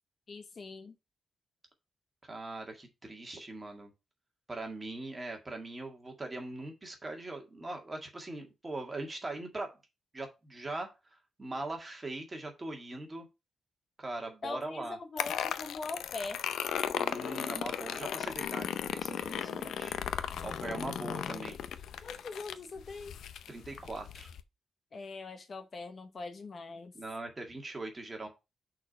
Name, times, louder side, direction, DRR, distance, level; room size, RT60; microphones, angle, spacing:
voice 1, 0.3-1.0 14.4-16.4 22.0-23.1 24.9-26.9, left 3 dB, 40° left, 0.9 m, -42 dB
voice 2, 2.2-3.9 4.5-9.8 10.1-10.9 11.4-13.3 14.0-15.0 17.0-21.6 23.5-24.3 26.9-28.3, right 2 dB, 20° right, 1.9 m, -41 dB
sound 1, 15.2-24.4, left 8 dB, 85° left, 0.5 m, -36 dB
6.2 x 4.4 x 5.5 m
wide cardioid pair, 160°, 0 cm